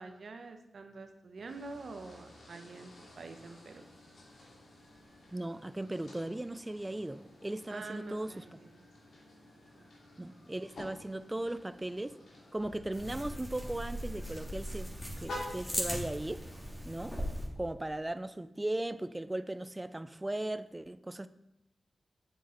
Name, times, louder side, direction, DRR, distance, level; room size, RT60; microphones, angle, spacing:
voice 1, 0.0-3.8 7.7-8.8 9.7-9.8, right 3 dB, 70° right, 6 dB, 1.1 m, -46 dB
sound 1, 1.5-16.8, left 1 dB, 75° left, 2.9 m, -51 dB
voice 2, 5.3-8.4 10.2-12.2 12.5-14.9 15.2-16.4 16.8-17.1 17.6-21.3, right 1 dB, 20° right, 13 dB, 0.5 m, -37 dB
sound 2, 12.9-17.5, equal, 5° left, 3.0 m, -39 dB
8.2 x 7.8 x 4.0 m, 0.90 s
cardioid pair, 45°, 0 cm